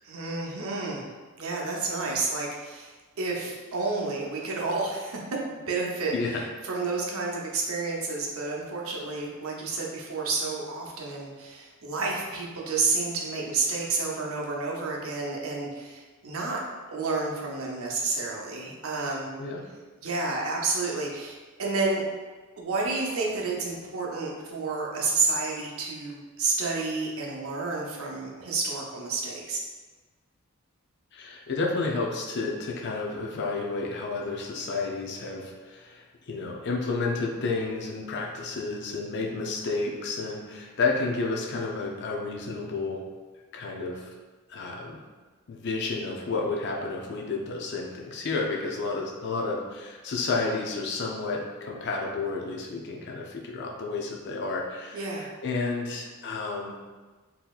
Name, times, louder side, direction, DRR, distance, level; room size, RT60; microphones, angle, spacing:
voice 1, 0.0-1.1 1.4-5.2 5.5-16.6 16.9-19.3 20.0-22.0 22.6-29.6 54.9-55.3, right 3 dB, 75° right, -2 dB, 0.7 m, -30 dB
voice 2, 31.1-43.0 43.5-44.1 44.5-45.0 45.5-55.0 55.4-56.8, left 3 dB, 55° left, -1 dB, 0.5 m, -31 dB
4.0 x 2.7 x 2.3 m, 1.3 s
head